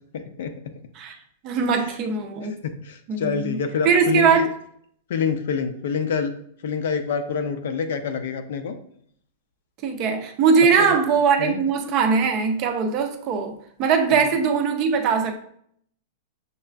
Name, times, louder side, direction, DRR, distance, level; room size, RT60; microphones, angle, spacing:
voice 1, 0.1-0.5 1.8-1.9 2.4-2.5 2.8-4.5 5.1-6.3 6.6-8.7 10.8-11.0 11.4-11.6 14.1-14.2, left 6 dB, 65° left, 0.4 m, -27 dB
voice 2, 1.4-2.6 3.1-4.5 9.8-15.3, right 6 dB, 30° right, 0.4 m, -21 dB
6.4 x 2.4 x 2.2 m
supercardioid pair, 170°, 0 cm